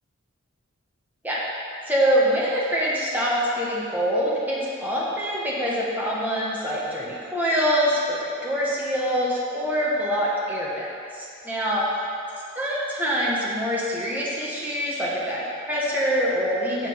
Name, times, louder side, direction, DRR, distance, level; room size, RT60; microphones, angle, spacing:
voice 1, 1.9-11.9 12.6-16.9, equal, 10° right, -6 dB, 1.2 m, -25 dB
7.6 x 5.0 x 5.0 m, 2.5 s
head